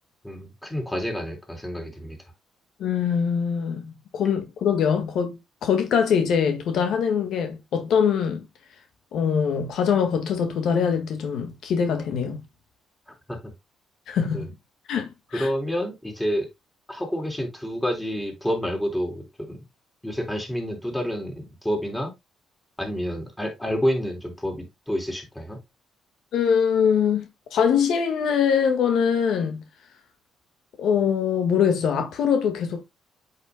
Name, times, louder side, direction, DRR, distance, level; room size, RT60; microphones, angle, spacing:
voice 1, 0.2-2.2 13.3-13.5 14.3-14.5 15.3-16.5 16.9-19.6 20.0-22.1 22.8-25.6, equal, 10° left, 3.6 m, -28 dB
voice 2, 2.8-8.4 9.1-12.4 14.1-14.5 14.9-15.5 26.3-27.2 27.5-29.6 30.8-32.8, left 7 dB, 75° left, 1.6 m, -23 dB
8.2 x 6.6 x 2.2 m
cardioid pair, 90°, 0 cm